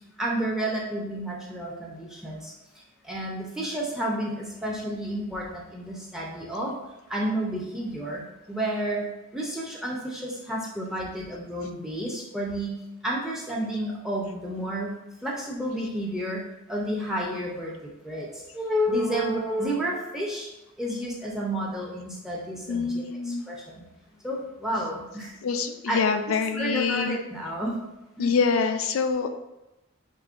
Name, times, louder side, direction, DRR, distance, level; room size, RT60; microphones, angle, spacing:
voice 1, 0.2-2.5 3.0-6.7 7.1-8.2 8.5-12.7 13.0-14.9 15.2-16.4 16.7-20.5 20.8-23.8 24.2-25.3 25.9-26.0 26.5-27.8 28.2-28.3, right 1 dB, ahead, -2 dB, 0.5 m, -30 dB
voice 2, 22.7-23.5 25.4-27.2 28.2-29.3, left 5 dB, 75° left, 8 dB, 0.4 m, -25 dB
5.0 x 2.9 x 2.4 m, 0.99 s
head